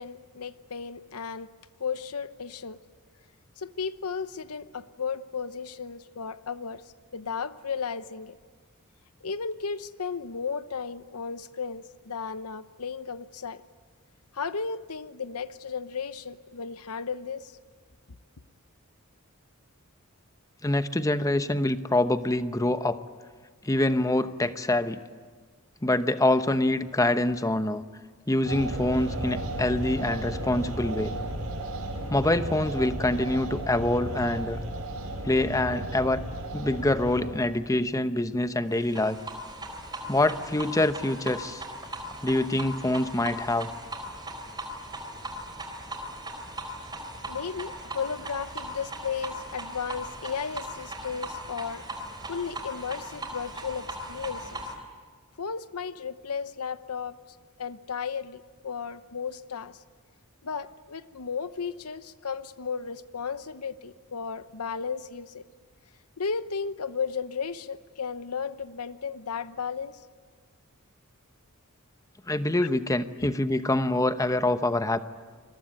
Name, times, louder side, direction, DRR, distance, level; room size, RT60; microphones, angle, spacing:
voice 1, 0.0-1.5 1.8-2.8 3.6-6.8 7.1-8.4 9.2-13.6 14.3-17.5 47.3-51.8 52.3-54.6 55.4-57.2 57.6-59.8 60.4-65.4 66.2-70.0 72.6-72.7, left 6 dB, 85° left, 13 dB, 0.9 m, -34 dB
voice 2, 20.6-23.0 23.6-25.0 25.8-27.8 28.3-31.1 32.1-34.6 35.2-36.2 36.5-39.2 40.1-41.6 42.2-43.7 72.3-75.0, left 1 dB, 15° left, 10 dB, 0.9 m, -25 dB
sound 1, 28.4-37.7, right 1 dB, 90° right, 5.8 m, -34 dB
sound 2, 38.8-54.7, right 1 dB, 20° right, 3.8 m, -39 dB
28.0 x 22.0 x 9.1 m, 1.5 s
head